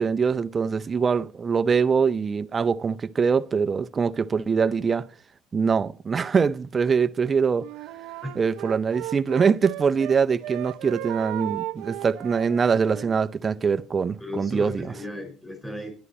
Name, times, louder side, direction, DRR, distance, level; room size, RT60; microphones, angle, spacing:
voice 1, 0.0-5.1 5.5-7.7 8.3-14.9, right 5 dB, 20° right, 0.5 m, -23 dB
Wind instrument woodwind instrument, 7.6-10.2 10.4-13.2, right 18 dB, 75° right, 0.6 m, -36 dB
voice 2, 14.2-15.9, left 1 dB, 10° left, 4.9 m, -35 dB
11.5 x 11.5 x 4.2 m
cardioid pair, 150°, 0 cm